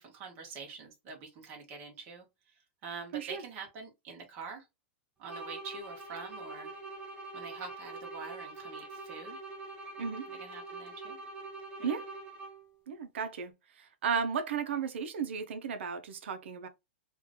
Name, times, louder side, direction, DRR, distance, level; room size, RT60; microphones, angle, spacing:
voice 1, 0.0-2.3 2.8-4.7 5.2-6.7 7.3-9.4 10.3-11.2 11.8-11.9, right 5 dB, 30° right, 1.3 m, -45 dB
sound 1, 5.2-12.8, right 3 dB, 15° right, 0.9 m, -44 dB
voice 2, 12.9-13.5 14.0-16.7, right 6 dB, 80° right, 0.7 m, -34 dB
3.0 x 2.5 x 3.5 m
supercardioid pair, 165°, 6 cm